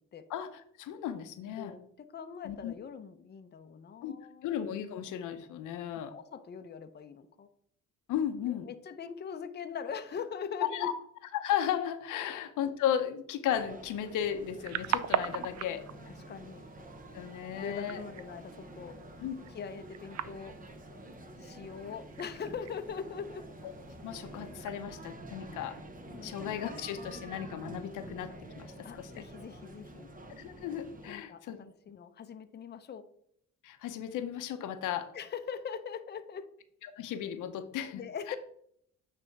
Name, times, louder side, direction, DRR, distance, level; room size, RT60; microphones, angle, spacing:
voice 1, 0.3-1.8 2.4-2.7 4.0-4.1 4.4-6.1 8.1-8.7 10.7-10.9 11.3-15.8 17.1-18.0 19.2-19.3 24.0-25.8 26.2-29.2 30.4-31.6 33.6-35.1 37.0-38.0 38.3-38.4, left 10 dB, 85° left, 9 dB, 0.8 m, -35 dB
voice 2, 1.6-4.5 6.1-7.5 8.5-10.9 16.1-16.6 17.6-19.0 19.5-20.6 21.4-23.5 26.1-26.3 28.8-30.1 31.1-33.1 35.1-36.5 37.9-38.4, left 6 dB, 35° left, 9 dB, 0.6 m, -42 dB
sound 1, 13.5-31.1, right 1 dB, 30° right, 1.0 m, -48 dB
Bats in East Finchley, 14.4-24.7, right 11 dB, 65° right, 0.5 m, -40 dB
9.1 x 3.4 x 4.6 m, 0.69 s
cardioid pair, 90°, 30 cm